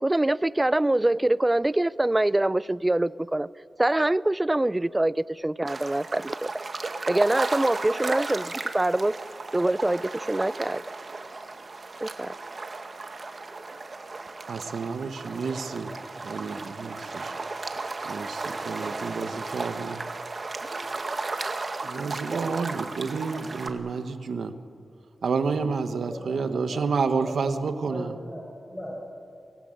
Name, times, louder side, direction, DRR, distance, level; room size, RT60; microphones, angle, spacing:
voice 1, 0.0-3.5 3.8-6.5 7.1-9.2 9.5-10.8 12.0-12.4, right 1 dB, 15° right, 19 dB, 0.5 m, -24 dB
sound 1, 5.7-23.7, right 3 dB, 45° right, 1.8 m, -34 dB
voice 2, 14.5-15.9 16.2-17.3 18.0-20.0 21.8-24.5 25.2-28.1, right 5 dB, 80° right, 9 dB, 1.4 m, -30 dB
voice 3, 26.1-26.8 27.2-27.4 27.9-29.0, equal, 20° left, -2 dB, 5.3 m, -39 dB
23.5 x 18.0 x 9.0 m, 2.3 s
wide cardioid pair, 90°, 0 cm